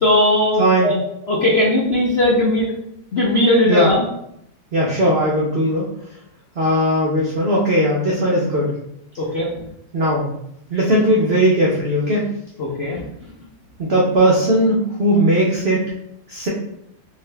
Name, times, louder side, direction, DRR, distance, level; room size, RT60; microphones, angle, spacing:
voice 1, 0.0-1.0 1.3-2.7 3.1-4.0 9.3-9.5 12.6-13.0, left 1 dB, 75° left, -4 dB, 0.5 m, -17 dB
voice 2, 0.6-0.9 3.7-3.9 4.7-5.9 6.6-8.7 9.9-10.3 10.7-12.2 13.8-15.8 16.3-16.5, equal, 90° right, -4 dB, 0.5 m, -18 dB
3.7 x 2.7 x 3.2 m, 0.75 s
omnidirectional pair, 2.1 m